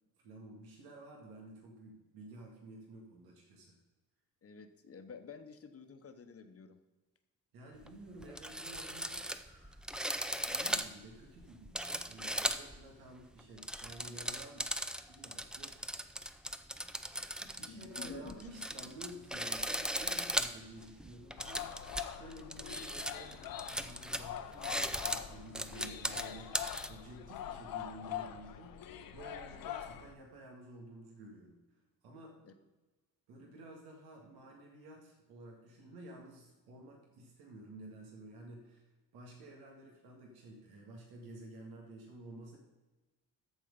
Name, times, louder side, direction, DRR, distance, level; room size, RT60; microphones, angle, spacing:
voice 1, 0.2-3.8 7.5-9.9 10.4-14.7 15.1-15.8 17.6-21.7 22.1-31.6 32.0-32.4 33.3-42.6, right 2 dB, 85° right, -1 dB, 1.9 m, -52 dB
voice 2, 4.4-6.8 17.4-18.4 32.4-32.5, left 5 dB, 40° left, 8 dB, 1.0 m, -50 dB
sound 1, 7.8-7.9 8.2-12.8 13.4-26.9, equal, ahead, 0.5 m, -38 dB
sound 2, 21.4-30.1, left 10 dB, 70° left, 0.8 m, -44 dB
13.5 x 4.6 x 5.2 m, 1.2 s
cardioid pair, 105°, 36 cm